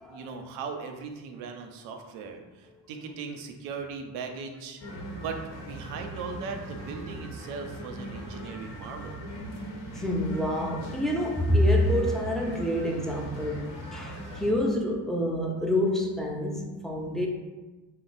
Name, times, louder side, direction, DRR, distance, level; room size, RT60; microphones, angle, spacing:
voice 1, 0.1-4.8 5.2-9.2, right 5 dB, 85° right, 4 dB, 0.5 m, -38 dB
sound 1, 4.8-14.5, right 1 dB, 65° left, 0.9 m, -40 dB
voice 2, 9.9-17.3, left 1 dB, ahead, 0 dB, 0.6 m, -27 dB
2.9 x 2.1 x 3.9 m, 1.2 s
hypercardioid pair, 50°, 48 cm